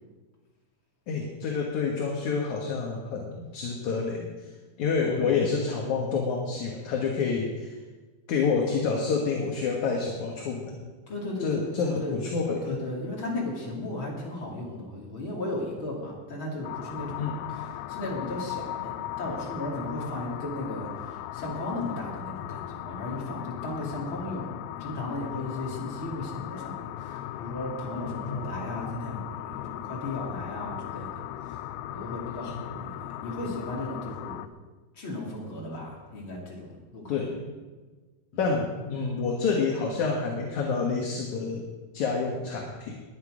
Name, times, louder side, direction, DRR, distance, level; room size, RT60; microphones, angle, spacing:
voice 1, 1.1-4.3 4.8-7.8 8.3-10.8 11.4-12.8 17.2-17.5 28.1-28.5 32.5-32.6 37.1-37.5 38.4-41.7 41.9-43.0, left 5 dB, 60° left, 0 dB, 2.3 m, -28 dB
voice 2, 5.0-5.3 11.1-12.2 12.6-24.5 24.8-31.6 31.9-34.4 34.9-37.2 38.3-38.5, left 2 dB, 35° left, -3 dB, 3.2 m, -35 dB
sound 1, 16.6-34.5, left 13 dB, 80° left, 2.3 m, -38 dB
20.5 x 10.5 x 5.1 m, 1.3 s
omnidirectional pair, 4.7 m